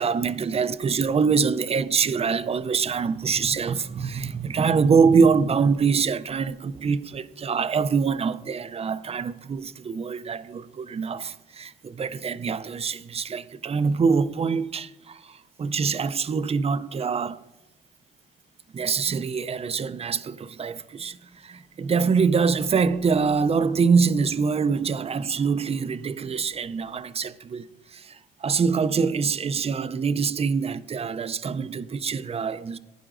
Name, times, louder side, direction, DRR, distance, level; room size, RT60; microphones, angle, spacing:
voice 1, 0.0-15.3 15.6-17.4 18.7-21.2 21.4-28.2 28.4-32.8, right 5 dB, 30° right, 0.5 m, -24 dB
16.0 x 9.9 x 2.5 m
cardioid pair, 90°, 20 cm